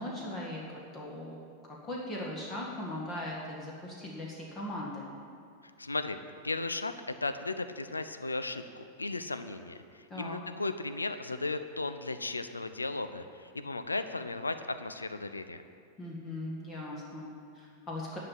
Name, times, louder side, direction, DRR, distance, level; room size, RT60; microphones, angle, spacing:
voice 1, 0.0-1.4 1.7-5.1 10.1-10.4 16.0-18.2, left 1 dB, 25° left, -3 dB, 1.8 m, -39 dB
voice 2, 5.8-6.2 6.4-6.9 7.2-15.6, left 3 dB, 80° left, 10 dB, 0.5 m, -35 dB
11.0 x 5.9 x 8.8 m, 2.3 s
figure-of-eight pair, 90°, 0 cm